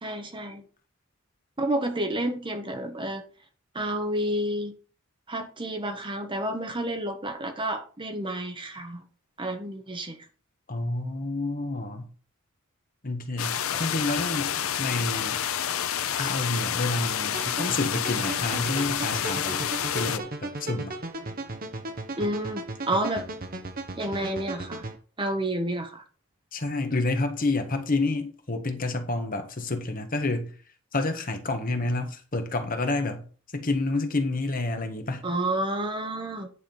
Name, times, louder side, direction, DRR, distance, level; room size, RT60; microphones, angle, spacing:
voice 1, 0.0-0.6 1.6-3.2 3.7-4.7 5.3-9.0 9.4-10.2 22.2-23.3 23.9-24.9 25.2-26.0 35.2-36.5, right 1 dB, 25° right, 1.3 m, -30 dB
voice 2, 10.7-12.1 13.0-15.4 16.2-20.9 26.5-30.5 30.9-33.2 33.5-35.2, left 2 dB, 45° left, 1.5 m, -29 dB
sound 1, 13.4-20.2, left 9 dB, 80° left, 0.6 m, -29 dB
sound 2, 17.3-25.0, right 2 dB, 45° right, 1.2 m, -36 dB
9.8 x 4.9 x 5.5 m
head